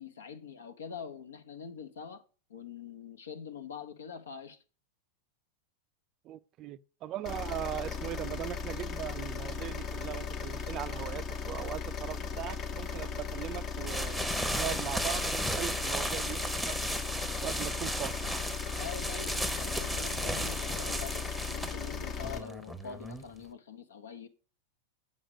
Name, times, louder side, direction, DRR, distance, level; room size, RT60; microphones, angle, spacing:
voice 1, 0.0-2.2 2.5-4.6 18.8-24.3, left 6 dB, 65° left, 1.0 m, -44 dB
voice 2, 6.2-16.8 17.4-18.1, right 13 dB, 35° right, 0.4 m, -39 dB
sound 1, 7.2-22.4, left 5 dB, 30° left, 0.8 m, -37 dB
sound 2, 13.9-23.4, right 1 dB, ahead, 0.9 m, -35 dB
8.5 x 5.6 x 4.8 m
figure-of-eight pair, 90°, 0 cm